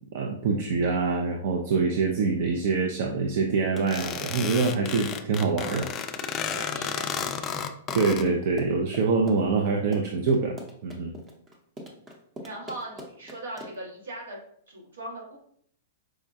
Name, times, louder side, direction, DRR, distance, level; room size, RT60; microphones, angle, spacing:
voice 1, 0.1-5.9 7.9-11.2, right 4 dB, 60° right, 1 dB, 0.4 m, -25 dB
Run, 3.5-13.9, equal, 15° right, 0.7 m, -43 dB
sound 1, 3.9-8.2, left 7 dB, 30° left, 0.3 m, -32 dB
voice 2, 6.5-7.5 12.4-14.4 14.7-15.4, right 1 dB, 75° right, -3 dB, 1.3 m, -39 dB
4.7 x 2.2 x 2.6 m, 0.66 s
hypercardioid pair, 110°, 0 cm